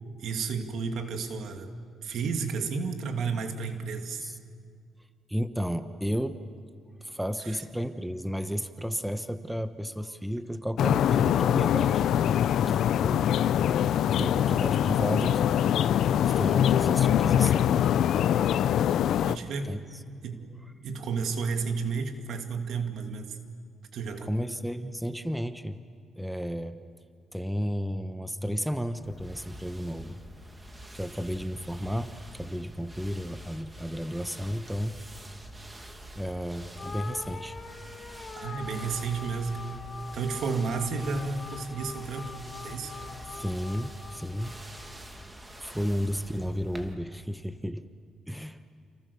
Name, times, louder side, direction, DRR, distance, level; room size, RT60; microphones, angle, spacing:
voice 1, 0.2-1.7 2.0-4.2 7.5-7.6 19.2-19.8 20.2-20.5 20.8-23.4 23.9-24.3 38.4-39.6 40.1-42.3 42.6-42.9, right 5 dB, 70° right, 5 dB, 2.7 m, -32 dB
voice 2, 5.3-6.4 7.0-12.0 14.2-15.5 16.2-17.7 19.7-19.8 24.2-25.8 26.2-26.8 27.3-30.2 30.9-34.9 36.2-37.6 43.3-44.5 45.6-47.8 48.3-48.6, equal, 5° right, 10 dB, 1.2 m, -33 dB
sound 1, 10.8-19.4, left 10 dB, 75° left, 0.7 m, -23 dB
sound 2, 29.0-47.0, right 1 dB, 20° right, 2.7 m, -46 dB
sound 3, 36.8-45.3, left 4 dB, 35° left, 2.2 m, -44 dB
29.5 x 28.5 x 7.0 m, 2.1 s
cardioid pair, 90°, 0 cm